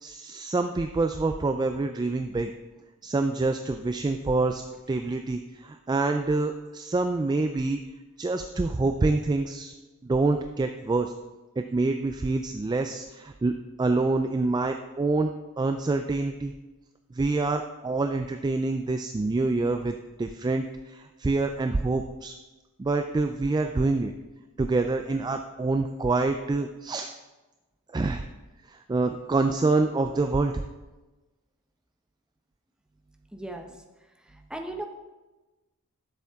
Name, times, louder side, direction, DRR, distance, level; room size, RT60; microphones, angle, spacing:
voice 1, 0.0-2.5 3.0-4.6 4.9-7.8 8.2-9.7 10.0-11.1 11.6-15.3 15.6-16.5 17.1-22.3 22.8-24.1 24.6-27.1 27.9-28.2 28.7-30.6, right 3 dB, 20° right, 6 dB, 0.3 m, -26 dB
voice 2, 33.3-33.7 34.5-34.8, right 1 dB, 5° right, 4 dB, 0.8 m, -35 dB
11.5 x 7.0 x 3.6 m, 1.1 s
head